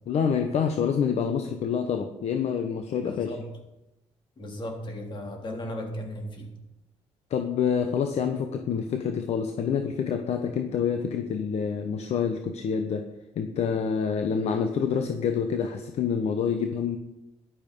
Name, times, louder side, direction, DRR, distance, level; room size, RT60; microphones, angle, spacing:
voice 1, 0.1-3.3 7.3-13.0 13.4-17.0, left 7 dB, 60° left, 6 dB, 1.1 m, -27 dB
voice 2, 3.0-3.4 4.4-6.5, left 1 dB, 40° left, 2 dB, 3.6 m, -36 dB
14.0 x 11.5 x 5.4 m, 0.95 s
cardioid pair, 120°, 12 cm